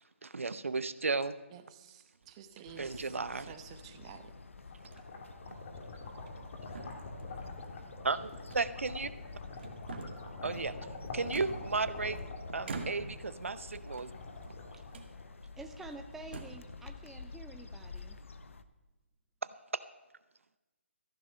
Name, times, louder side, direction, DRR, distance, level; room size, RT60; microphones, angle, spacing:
voice 1, 0.2-1.4 2.8-3.6 8.0-9.1 10.4-10.8 11.1-12.2 12.5-14.1 19.7-19.8, right 4 dB, 80° right, 14 dB, 0.7 m, -34 dB
voice 2, 1.5-3.1 3.4-4.3, right 9 dB, 25° right, 8 dB, 1.0 m, -51 dB
sound 1, 2.1-2.6 3.4-4.1 4.8-5.1 5.5-5.6 6.1-6.5 6.7-7.5 8.5-9.2 9.6-10.3 11.3-12.1 12.6-13.3 13.8-14.5 14.9-15.1 15.7-15.8 16.2-16.7, right 4 dB, 55° right, 1.6 m, -46 dB
sound 2, 2.6-18.6, left 4 dB, 75° left, 0.8 m, -50 dB
sound 3, 4.4-15.5, left 3 dB, 40° left, 2.7 m, -46 dB
voice 3, 15.6-18.2, right 3 dB, 5° right, 5 dB, 0.4 m, -48 dB
14.5 x 10.5 x 5.6 m, 1.1 s
figure-of-eight pair, 155°, 7 cm